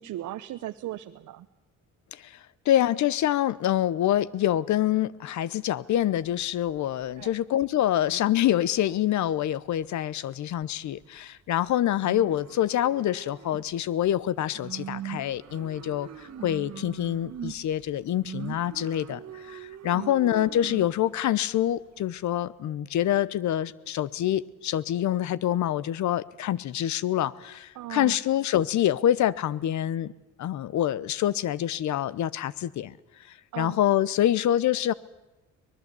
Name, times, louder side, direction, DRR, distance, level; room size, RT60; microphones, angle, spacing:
voice 1, 0.0-1.5 7.2-7.3 19.9-20.1 27.7-28.2 33.5-33.8, right 14 dB, 75° right, 8 dB, 0.8 m, -37 dB
voice 2, 2.7-16.1 16.4-30.1 30.4-32.9 33.6-34.9, left 12 dB, 70° left, 21 dB, 0.9 m, -26 dB
sound 1, 6.0-8.4 8.7-9.3 9.6-10.1 10.5-11.2 11.7-22.4, right 9 dB, 60° right, 1.5 m, -42 dB
24.0 x 19.5 x 8.4 m, 1.0 s
cardioid pair, 90°, 30 cm